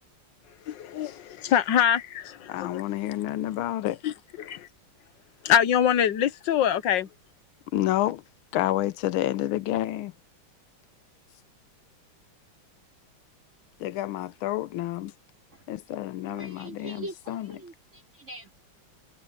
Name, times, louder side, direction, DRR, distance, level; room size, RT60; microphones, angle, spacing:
voice 1, 0.7-2.8 4.0-4.1 4.4-4.7 5.4-7.1, left 9 dB, 65° left, 1.5 m, -24 dB
voice 2, 2.5-4.0 7.7-8.2 8.5-10.1 13.8-15.1 15.7-17.5, left 14 dB, 90° left, 1.5 m, -29 dB
voice 3, 16.3-18.5, right 1 dB, 35° right, 5.3 m, -42 dB
omnidirectional pair, 2.2 m